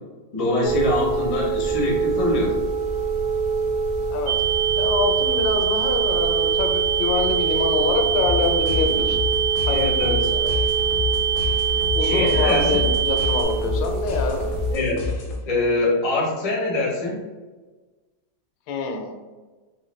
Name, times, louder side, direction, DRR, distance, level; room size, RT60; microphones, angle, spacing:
voice 1, 0.3-2.5 9.7-10.2 12.0-12.9 14.7-15.0 15.5-17.2, left 2 dB, 50° left, -3 dB, 0.4 m, -23 dB
sound 1, 0.6-14.8, right 4 dB, 45° right, 0.7 m, -26 dB
sound 2, 4.3-13.4, right 9 dB, 75° right, 1.2 m, -24 dB
voice 2, 4.8-9.2 9.7-9.9 10.3-10.6 11.9-14.5 18.7-19.1, left 4 dB, 85° left, 3 dB, 1.3 m, -25 dB
sound 3, 8.2-15.7, left 4 dB, 65° left, 0.7 m, -29 dB
3.1 x 2.9 x 3.1 m, 1.3 s
omnidirectional pair, 2.0 m